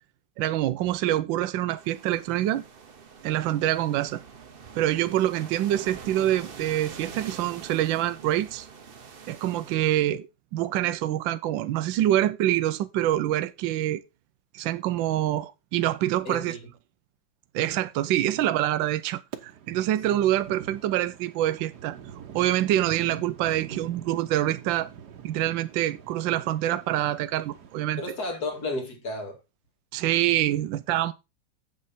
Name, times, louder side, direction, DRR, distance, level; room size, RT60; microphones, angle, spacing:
voice 1, 0.4-2.6 3.2-4.2 4.7-8.7 9.3-10.3 10.5-14.0 14.5-16.5 17.5-22.0 22.3-24.9 25.2-28.0 29.9-31.1, right 13 dB, 80° right, 1.4 m, -26 dB
sound 1, 1.8-9.8, right 6 dB, 40° right, 0.9 m, -45 dB
voice 2, 16.2-16.7 20.1-20.3 28.0-29.4, left 2 dB, 55° left, 3.1 m, -33 dB
sound 2, 19.3-28.7, right 8 dB, 60° right, 1.5 m, -45 dB
8.2 x 7.4 x 4.2 m
omnidirectional pair, 2.1 m